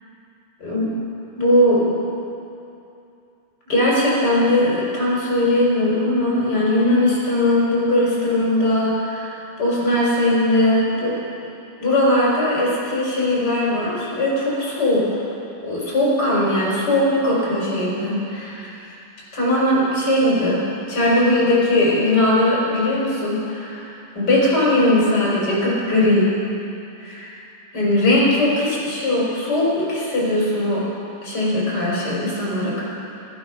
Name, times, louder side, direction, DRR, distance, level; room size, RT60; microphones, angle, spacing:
voice 1, 0.6-0.9 1.4-1.9 3.7-11.1 11.8-15.2 15.6-18.7 19.3-20.6 20.9-23.9 24.1-26.3 27.0-27.3 27.7-30.8 31.2-32.8, left 1 dB, 25° left, -6 dB, 4.8 m, -19 dB
14.5 x 14.0 x 5.8 m, 2.7 s
omnidirectional pair, 4.4 m